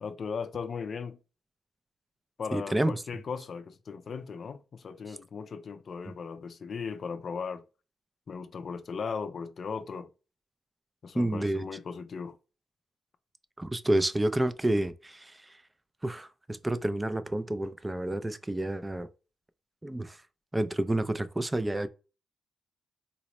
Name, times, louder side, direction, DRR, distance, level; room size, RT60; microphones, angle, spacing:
voice 1, 0.0-1.2 2.4-7.6 8.3-10.1 11.0-12.4, left 5 dB, 55° left, 0.4 m, -37 dB
voice 2, 2.5-3.0 5.1-5.2 6.0-6.1 11.1-11.7 13.6-15.6 16.0-19.1 19.8-20.2 20.5-21.9, right 1 dB, 15° right, 0.3 m, -29 dB
4.0 x 2.0 x 2.9 m
cardioid pair, 85°, 0 cm